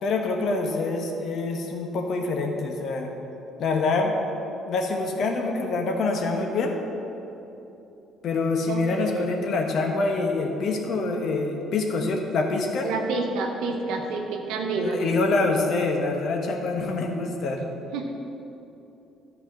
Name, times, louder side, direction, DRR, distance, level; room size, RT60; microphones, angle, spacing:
voice 1, 0.0-3.1 3.6-4.2 4.6-6.7 8.2-12.9 14.6-17.6, left 3 dB, 60° left, 2 dB, 1.3 m, -26 dB
voice 2, 8.7-9.3 12.8-15.0 17.9-18.1, right 3 dB, 75° right, 2 dB, 0.9 m, -29 dB
11.5 x 4.8 x 6.2 m, 3.0 s
hypercardioid pair, 55°, 0 cm